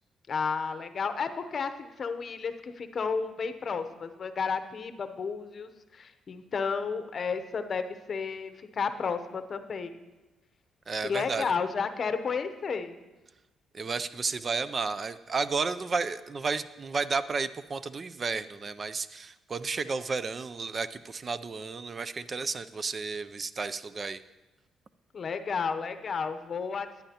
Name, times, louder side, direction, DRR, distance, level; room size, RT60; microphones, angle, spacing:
voice 1, 0.3-10.0 11.0-12.9 25.1-27.0, left 5 dB, 45° left, 10 dB, 0.7 m, -32 dB
voice 2, 10.9-11.5 13.7-24.2, right 4 dB, 40° right, 14 dB, 0.4 m, -32 dB
14.5 x 10.5 x 2.9 m, 1.1 s
cardioid pair, 90°, 0 cm